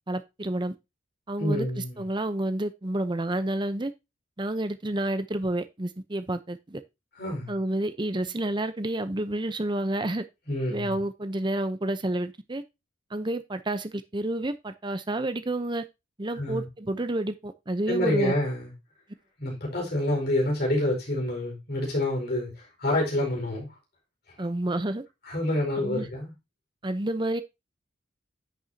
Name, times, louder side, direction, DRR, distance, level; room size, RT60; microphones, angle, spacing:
voice 1, 0.1-0.7 1.3-3.9 4.4-6.8 7.5-10.2 10.7-12.6 13.1-15.8 16.2-18.3 24.4-25.0 25.8-26.1 26.8-27.4, right 1 dB, 25° right, 0.7 m, -29 dB
voice 2, 1.4-2.0 7.2-7.5 10.5-11.0 16.4-16.7 17.9-18.7 19.4-22.5 22.8-23.7 25.2-26.3, left 1 dB, 55° left, 4.8 m, -27 dB
10.0 x 6.8 x 2.8 m
head